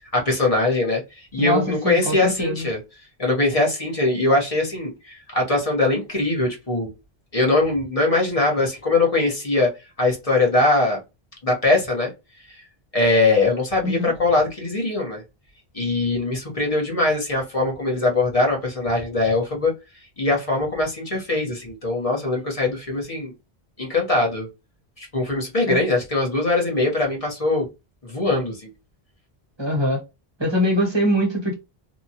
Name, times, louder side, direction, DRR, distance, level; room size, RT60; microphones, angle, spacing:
voice 1, 0.1-2.8 3.2-6.9 7.3-11.0 11.4-12.1 12.9-15.2 15.7-19.7 20.2-23.3 23.8-24.5 25.0-27.7 28.0-28.7, left 2 dB, 35° left, 1.0 m, -21 dB
voice 2, 1.4-2.7 13.8-14.1 25.6-25.8 29.6-30.0 30.4-31.5, equal, 25° right, 1.0 m, -23 dB
2.8 x 2.3 x 2.7 m
omnidirectional pair, 1.0 m